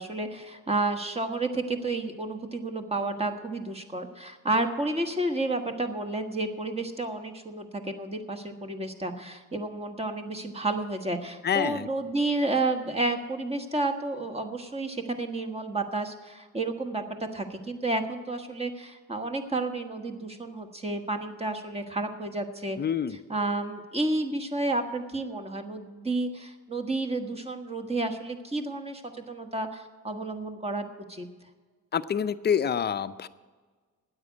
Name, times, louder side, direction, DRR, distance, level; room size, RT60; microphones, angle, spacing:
voice 1, 0.0-22.8 23.1-31.3, right 2 dB, 20° right, 6 dB, 1.4 m, -31 dB
voice 2, 11.4-11.9 22.8-23.2 31.9-33.3, left 8 dB, 35° left, 13 dB, 0.6 m, -27 dB
9.7 x 8.1 x 9.4 m, 1.4 s
cardioid pair, 90°, 30 cm